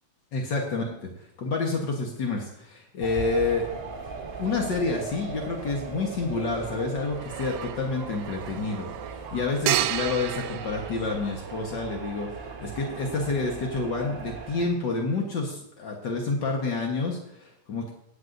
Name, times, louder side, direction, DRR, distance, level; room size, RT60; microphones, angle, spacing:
voice 1, 0.3-1.1 1.4-3.7 4.4-17.9, left 3 dB, 70° left, 0 dB, 1.0 m, -29 dB
sound 1, 3.0-14.7, right 4 dB, 30° right, 1.5 m, -38 dB
sound 2, 4.3-4.5 7.0-11.8, right 13 dB, 85° right, 1.6 m, -32 dB
17.0 x 9.8 x 2.6 m, 0.82 s
omnidirectional pair, 3.9 m